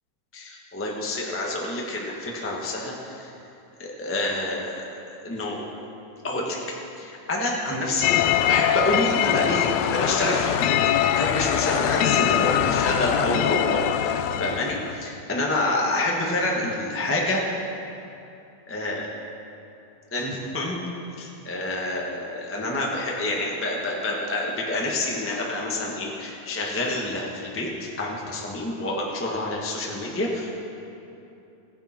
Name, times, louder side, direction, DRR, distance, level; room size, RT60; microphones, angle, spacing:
voice 1, 0.3-3.3 3.8-5.7 6.2-6.6 7.0-8.1 8.4-10.7 11.1-17.5 18.7-19.1 20.1-20.8 21.2-30.7, left 2 dB, 10° left, -2 dB, 0.6 m, -28 dB
sound 1, 8.0-15.1, left 10 dB, 80° left, 1.8 m, -23 dB
17.5 x 10.5 x 4.5 m, 2.8 s
omnidirectional pair, 3.3 m